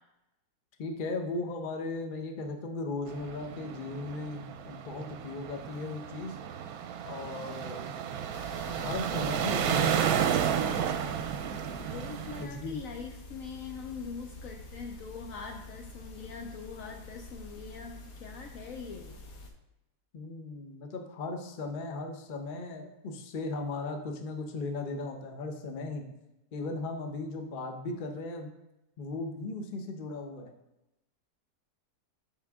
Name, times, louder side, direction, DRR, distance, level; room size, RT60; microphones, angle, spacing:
voice 1, 0.8-6.4 7.0-7.9 8.8-10.4 12.4-12.8 20.1-26.1 26.5-28.5 29.0-30.5, left 2 dB, 40° left, 4 dB, 0.8 m, -37 dB
sound 1, 3.1-12.4, right 8 dB, 70° right, 1.0 m, -32 dB
sound 2, 8.3-19.5, left 1 dB, 90° left, 1.6 m, -47 dB
voice 2, 11.9-19.2, left 5 dB, 65° left, 3 dB, 1.0 m, -42 dB
7.5 x 5.6 x 3.6 m, 0.93 s
omnidirectional pair, 1.7 m